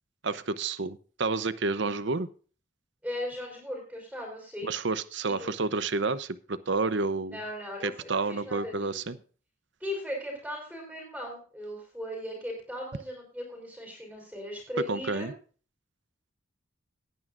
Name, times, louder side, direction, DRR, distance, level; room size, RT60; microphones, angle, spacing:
voice 1, 0.2-2.3 4.6-7.4 7.8-9.2 14.9-15.3, right 3 dB, 65° right, 14 dB, 0.8 m, -30 dB
voice 2, 3.0-4.7 5.2-5.5 7.3-9.2 9.8-15.3, left 1 dB, ahead, -2 dB, 4.4 m, -38 dB
20.0 x 9.4 x 2.6 m, 0.38 s
head